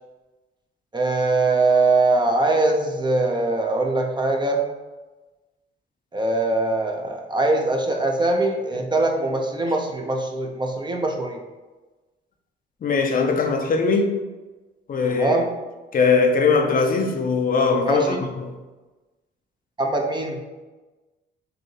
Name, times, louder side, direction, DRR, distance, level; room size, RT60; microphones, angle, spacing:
voice 1, 0.9-4.6 6.1-11.4 15.1-15.5 17.8-18.2 19.8-20.4, right 2 dB, 20° right, 2 dB, 0.7 m, -22 dB
voice 2, 12.8-14.1 14.9-15.4 15.9-18.5, left 4 dB, 45° left, 3 dB, 0.6 m, -20 dB
6.6 x 2.8 x 2.8 m, 1.2 s
cardioid pair, 90°, 20 cm